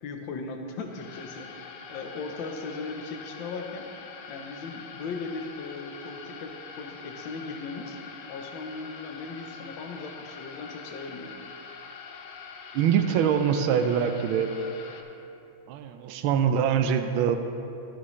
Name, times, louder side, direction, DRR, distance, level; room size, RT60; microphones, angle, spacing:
voice 1, 0.0-1.5 1.9-3.9 4.3-8.0 8.3-11.4, left 4 dB, 70° left, 4 dB, 1.5 m, -38 dB
sound 1, 0.8-15.0, left 5 dB, 85° left, 1.6 m, -44 dB
voice 2, 12.7-14.5 15.7-17.4, right 8 dB, 80° right, 7 dB, 1.3 m, -24 dB
13.0 x 10.5 x 3.2 m, 2.9 s
omnidirectional pair, 2.3 m